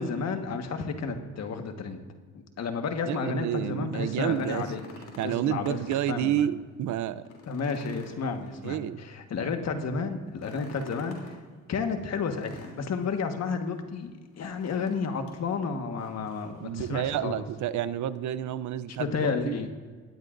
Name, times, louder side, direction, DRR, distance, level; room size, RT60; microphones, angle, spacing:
voice 1, 0.0-2.0 2.6-4.8 5.2-5.8 6.1-6.5 7.5-11.4 11.7-17.4 19.0-19.7, left 5 dB, 60° left, 5 dB, 1.5 m, -31 dB
voice 2, 3.1-4.7 5.2-7.2 8.6-9.0 16.6-19.6, right 11 dB, 75° right, 15 dB, 0.6 m, -30 dB
sound 1, 4.0-6.2 6.6-6.7 7.2-9.1 10.3-11.4 12.3-13.2 14.3-15.0 15.3-15.4 16.0-16.6 17.7-17.8, left 3 dB, 80° left, 3.2 m, -48 dB
19.0 x 13.5 x 2.6 m, 1.5 s
cardioid pair, 90°, 30 cm